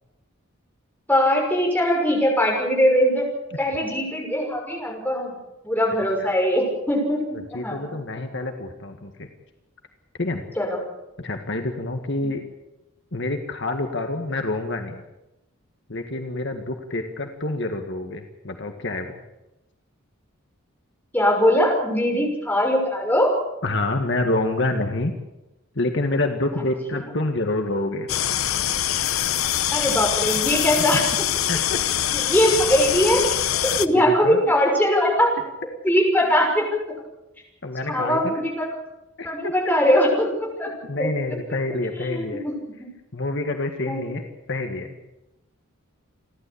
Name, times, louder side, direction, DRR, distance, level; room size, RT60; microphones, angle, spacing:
voice 1, 1.1-3.3 3.6-5.3 5.6-7.8 10.6-10.8 12.2-12.3 21.1-23.3 29.7-31.0 32.1-33.2 33.6-35.3 35.8-36.7 37.8-38.7 39.2-40.3 40.6-40.7 41.0-41.1 41.9-42.9 43.9-44.1, equal, 10° left, 0 dB, 6.2 m, -21 dB
voice 2, 7.3-9.3 10.2-10.4 11.2-12.4 13.1-15.0 15.9-19.2 23.6-25.1 25.8-28.1 30.8-31.0 31.5-31.8 33.9-34.5 37.6-38.4 39.2-39.3 39.6-39.7 40.6-42.4 43.1-44.2 44.5-45.0, left 2 dB, 60° left, 5 dB, 1.8 m, -27 dB
sound 1, 28.1-33.9, left 11 dB, 80° left, 0.9 m, -24 dB
29.5 x 12.5 x 8.6 m, 0.98 s
head